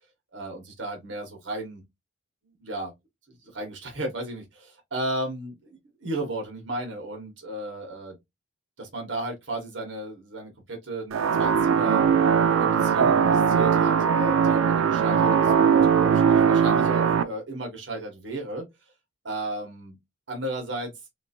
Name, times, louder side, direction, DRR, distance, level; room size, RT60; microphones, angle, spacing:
voice 1, 0.3-1.8 2.6-2.9 3.4-8.2 8.8-12.0 12.5-18.6 19.2-20.0 20.3-20.9, right 1 dB, 60° right, 1.3 m, -34 dB
sound 1, 11.1-17.2, right 7 dB, 90° right, 0.4 m, -20 dB
3.0 x 2.5 x 2.7 m
head